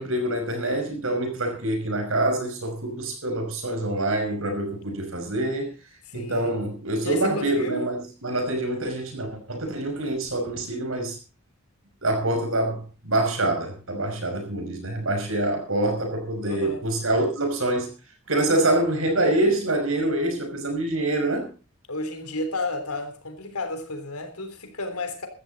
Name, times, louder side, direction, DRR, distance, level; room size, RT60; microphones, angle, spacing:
voice 1, 0.0-5.7 6.1-11.2 12.0-17.9 18.3-21.5, right 1 dB, 65° right, 5.6 m, -26 dB
voice 2, 6.1-6.6 7.0-7.8 16.4-16.8 21.9-25.3, left 2 dB, 85° left, 3.5 m, -32 dB
16.0 x 13.5 x 4.1 m
head